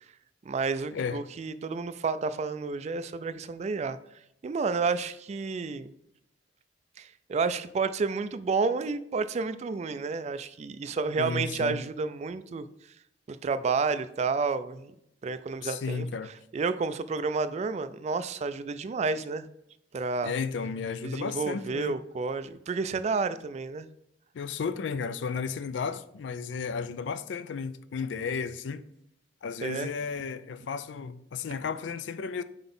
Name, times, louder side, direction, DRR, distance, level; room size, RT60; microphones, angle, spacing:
voice 1, 0.5-4.0 4.4-5.9 7.0-12.7 13.3-14.9 15.2-16.1 16.5-19.5 19.9-20.3 21.0-23.9 29.6-29.9, right 4 dB, 35° right, 0.3 m, -30 dB
voice 2, 11.2-11.8 15.6-16.3 20.2-22.0 24.3-28.8 29.4-32.4, left 5 dB, 75° left, 0.4 m, -33 dB
4.9 x 3.9 x 5.3 m
head